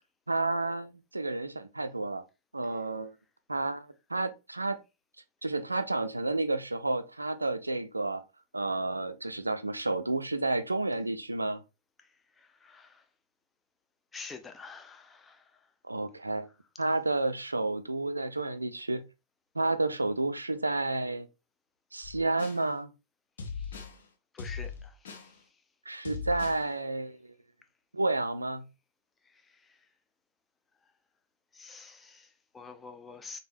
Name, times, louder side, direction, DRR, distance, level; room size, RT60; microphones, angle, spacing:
voice 1, 0.3-2.2 2.5-3.1 3.5-4.8 5.4-8.2 8.5-11.6 15.9-16.5 16.8-19.1 19.6-21.3 21.9-22.9 25.9-27.3 27.9-28.7, right 2 dB, 85° right, 0.3 m, -31 dB
voice 2, 12.0-13.1 14.1-15.7 23.5-23.8 24.3-25.5 29.2-29.9 31.5-33.4, left 5 dB, 15° left, 0.3 m, -48 dB
sound 1, 22.0-22.6 23.4-24.0 24.4-25.3 26.0-26.6, left 5 dB, 65° left, 0.6 m, -39 dB
3.4 x 2.1 x 2.6 m
figure-of-eight pair, 105°, 0 cm